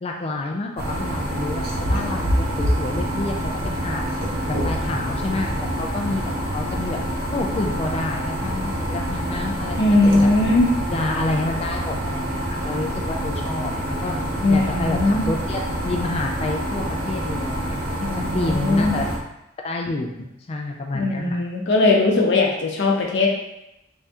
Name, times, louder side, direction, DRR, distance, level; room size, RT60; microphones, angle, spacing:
voice 1, 0.0-3.4 3.6-4.0 4.5-6.2 6.5-7.0 7.3-10.3 10.9-14.2 14.5-17.8 18.3-19.1 19.6-20.1 20.5-21.4, left 2 dB, 30° left, 1 dB, 0.3 m, -28 dB
sound 1, 0.8-19.2, equal, 50° right, 0.6 m, -26 dB
voice 2, 9.8-10.7 14.4-15.2 18.0-18.9 20.9-23.3, left 2 dB, 65° left, -1 dB, 0.7 m, -19 dB
3.5 x 2.7 x 3.4 m, 0.89 s
head